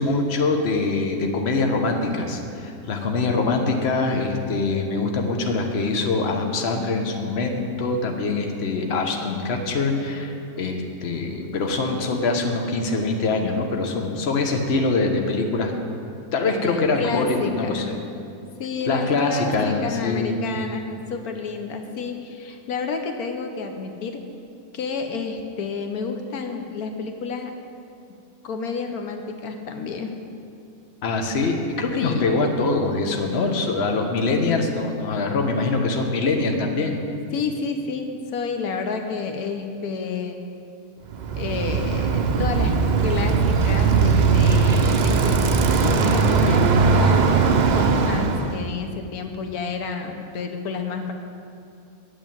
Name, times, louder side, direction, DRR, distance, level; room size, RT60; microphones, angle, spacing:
voice 1, 0.0-15.7 16.3-17.9 18.9-20.4 31.0-37.0, left 3 dB, 50° left, 3 dB, 1.2 m, -24 dB
voice 2, 16.6-18.0 18.6-24.2 24.7-27.5 28.4-30.1 32.0-32.3 37.3-40.4 41.3-51.1, left 5 dB, 80° left, 5 dB, 1.3 m, -30 dB
Bicycle, 41.1-48.6, right 5 dB, 85° right, 0.4 m, -19 dB
8.8 x 7.3 x 8.9 m, 2.5 s
omnidirectional pair, 1.6 m